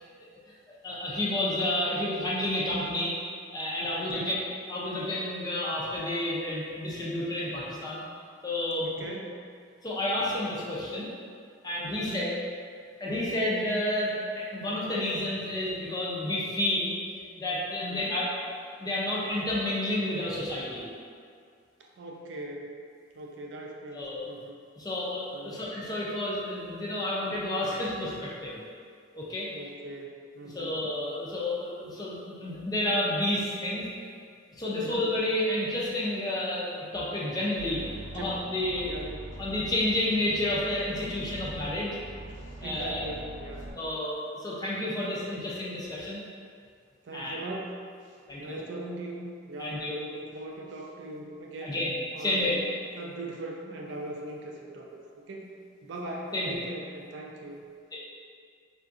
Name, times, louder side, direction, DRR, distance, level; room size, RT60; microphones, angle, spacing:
voice 1, 0.7-3.1 3.5-4.4 4.7-8.0 8.4-9.0 9.8-11.1 11.6-12.3 13.0-16.9 17.4-18.3 18.8-20.9 23.9-24.2 24.8-28.6 29.1-29.5 30.4-33.8 34.6-38.9 39.4-42.0 42.6-43.0 43.7-46.2 47.1-47.4 48.3-48.6 49.6-50.0 51.6-51.9 52.2-52.6 56.3-56.6, left 1 dB, 20° left, -6 dB, 0.4 m, -30 dB
voice 2, 3.9-4.4 8.8-9.3 11.9-12.3 17.8-18.2 21.8-22.7 23.2-24.6 25.3-25.7 29.5-30.8 34.7-35.0 38.1-38.4 38.8-39.1 42.6-43.7 47.0-47.8 48.4-51.8 52.1-52.6 53.0-55.4 55.8-57.6, right 1 dB, 65° right, 0 dB, 0.4 m, -40 dB
sound 1, 37.6-43.7, right 1 dB, 65° left, 0.9 m, -43 dB
3.7 x 2.5 x 2.4 m, 2.2 s
head